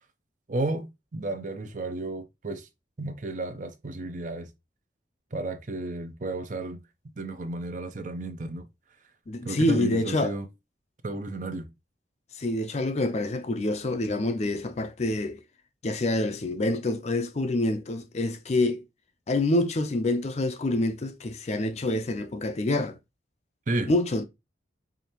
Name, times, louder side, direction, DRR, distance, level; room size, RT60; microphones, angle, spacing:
voice 1, 0.5-2.7 3.0-4.5 5.3-6.8 7.2-8.6 9.4-10.5 11.0-11.7 23.7-23.9, right 2 dB, 45° right, 0.6 m, -32 dB
voice 2, 9.3-10.3 12.4-15.4 15.8-18.8 19.3-23.0 23.9-24.2, left 2 dB, 40° left, 0.5 m, -27 dB
4.9 x 2.7 x 2.9 m
head